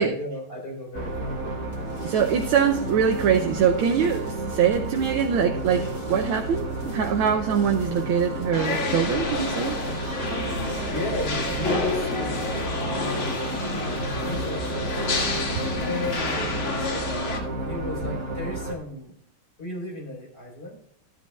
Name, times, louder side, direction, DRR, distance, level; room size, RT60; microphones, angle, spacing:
voice 1, 0.0-1.4 10.9-12.5 12.8-15.1 15.8-19.1 19.6-20.8, left 1 dB, 25° left, -2 dB, 4.2 m, -35 dB
sound 1, 0.9-18.7, right 2 dB, 45° right, 1.8 m, -31 dB
sound 2, 1.7-16.5, left 1 dB, 60° left, 2.3 m, -44 dB
voice 2, 2.0-9.8, right 7 dB, 85° right, 3 dB, 1.5 m, -23 dB
sound 3, 8.5-17.4, left 3 dB, 85° left, 3.0 m, -29 dB
15.0 x 10.5 x 2.3 m, 0.66 s
omnidirectional pair, 2.2 m